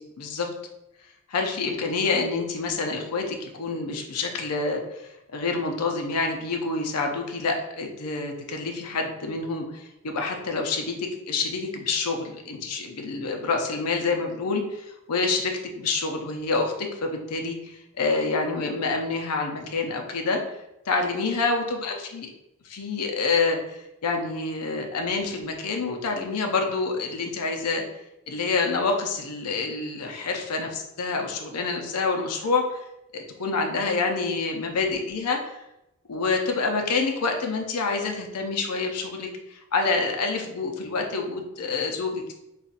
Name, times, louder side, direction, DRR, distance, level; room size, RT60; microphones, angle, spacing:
voice 1, 0.2-0.5 1.3-20.4 20.9-22.3 22.6-27.8 28.3-32.8 33.1-35.6 36.1-42.3, left 4 dB, 85° left, 3 dB, 0.6 m, -27 dB
5.3 x 2.5 x 2.4 m, 0.89 s
head